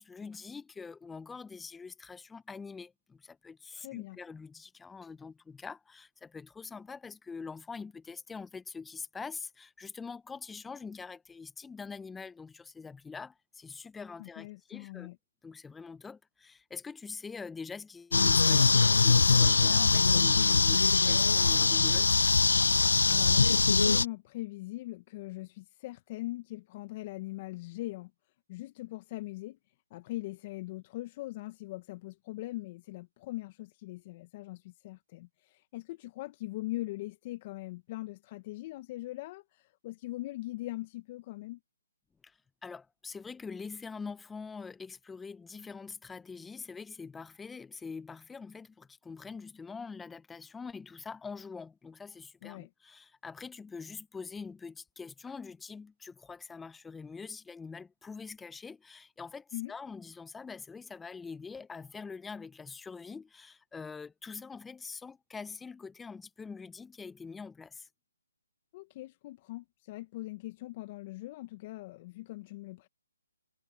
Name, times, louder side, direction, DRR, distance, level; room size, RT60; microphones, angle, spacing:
voice 1, 0.0-15.1 15.4-22.2 42.2-67.9, left 5 dB, 5° left, 0.8 m, -44 dB
voice 2, 3.8-4.2 14.2-15.2 23.1-28.1 28.5-29.6 29.9-41.6 52.4-52.7 59.5-59.7 68.7-72.9, left 18 dB, 30° left, 1.1 m, -41 dB
sound 1, 18.1-24.1, left 4 dB, 75° left, 0.3 m, -23 dB
hypercardioid pair, 150°, 0 cm